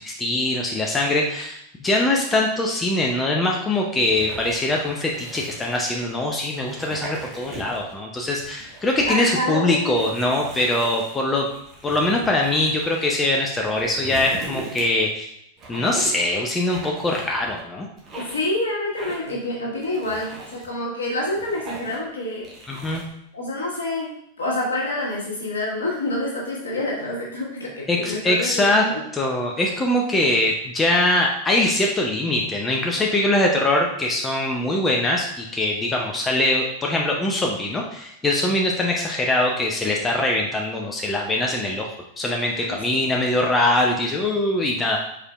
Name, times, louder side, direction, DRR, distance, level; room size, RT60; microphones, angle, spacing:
voice 1, 0.0-11.5 11.8-15.3 15.7-17.9 22.7-23.0 27.9-28.8 29.1-41.9 42.2-45.0, left 1 dB, 15° left, 0 dB, 0.5 m, -22 dB
sound 1, 4.0-6.1 6.6-7.9 8.3-9.3 9.9-13.1 13.6-15.1 15.6-16.2 16.7-17.6 18.0-18.5 19.0-19.4 19.8-20.7 21.1-22.1 22.4-23.1, right 3 dB, 30° right, 1.2 m, -39 dB
voice 2, 9.1-9.9 18.1-22.4 23.3-24.1 24.4-29.0 42.5-43.0, left 1 dB, 70° left, -4 dB, 1.6 m, -27 dB
4.9 x 4.3 x 2.3 m, 0.76 s
figure-of-eight pair, 90°, 0 cm